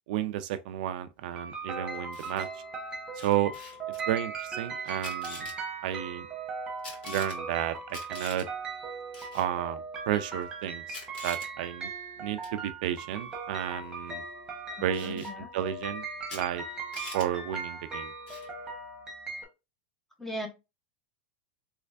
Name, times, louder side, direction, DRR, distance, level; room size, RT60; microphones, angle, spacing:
voice 1, 0.1-2.5 3.2-3.5 4.1-5.5 5.8-6.3 7.0-8.5 9.3-11.0 11.2-11.9 12.2-14.2 14.8-15.2 15.5-16.0 16.3-16.6 17.1-18.1, right 11 dB, 60° right, 0.4 m, -32 dB
sound 1, 1.4-19.4, right 4 dB, 15° right, 1.1 m, -39 dB
Camera, 1.9-2.5 3.2-4.0 4.9-5.6 6.8-7.4 7.9-8.5 9.1-9.5 10.4-10.5 10.9-11.5 12.4-12.6 14.9-15.3 16.3-16.4 16.7-17.3 18.3-18.5, left 3 dB, 80° left, 1.9 m, -44 dB
voice 2, 14.7-15.5 20.2-20.5, equal, 5° left, 0.7 m, -38 dB
3.3 x 3.1 x 2.5 m
supercardioid pair, 155°, 5 cm